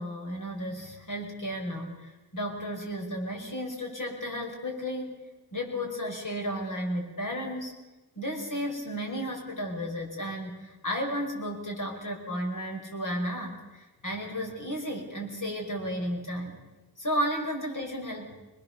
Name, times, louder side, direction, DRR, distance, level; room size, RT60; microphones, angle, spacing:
voice 1, 0.0-5.2 5.5-7.8 8.2-16.6 17.0-18.4, equal, 50° left, 0 dB, 6.2 m, -33 dB
25.0 x 21.0 x 7.1 m, 1.1 s
wide cardioid pair, 80°, 39 cm